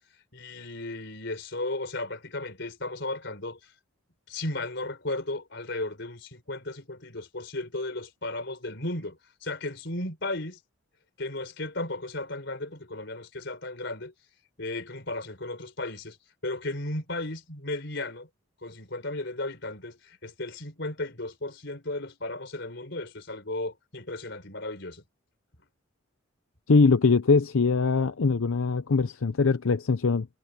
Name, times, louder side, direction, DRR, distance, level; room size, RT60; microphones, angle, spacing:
voice 1, 0.3-3.7 4.3-10.6 11.2-14.1 14.6-16.2 16.4-18.3 18.6-25.0, left 2 dB, 55° left, 4.5 m, -35 dB
voice 2, 26.7-30.3, left 4 dB, 75° left, 0.6 m, -22 dB
head